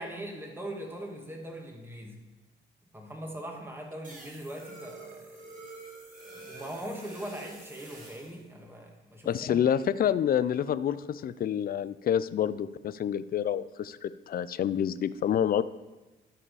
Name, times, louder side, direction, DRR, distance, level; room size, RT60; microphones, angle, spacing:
voice 1, 0.0-2.2 2.9-5.5 6.2-9.7, right 1 dB, 10° right, 1 dB, 1.8 m, -41 dB
sound 1, 4.0-8.4, right 2 dB, 40° right, 2.9 m, -47 dB
voice 2, 9.3-15.6, left 9 dB, 50° left, 16 dB, 0.4 m, -28 dB
13.0 x 4.9 x 4.9 m, 1.2 s
cardioid pair, 90°, 20 cm